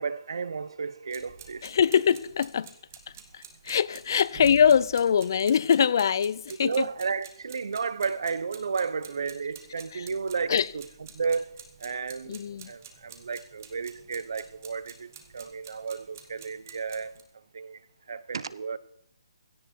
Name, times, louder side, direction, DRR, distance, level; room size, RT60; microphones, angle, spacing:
voice 1, 0.0-1.8 6.6-10.9 11.1-12.4 12.6-18.8, right 5 dB, 60° right, 1.1 m, -33 dB
sound 1, 1.1-17.2, right 7 dB, 30° right, 2.3 m, -49 dB
voice 2, 1.6-2.7 3.3-6.9 9.9-10.1 10.5-10.7 12.3-12.7, left 7 dB, 45° left, 0.5 m, -23 dB
17.0 x 16.0 x 4.6 m
hypercardioid pair, 170°, 3 cm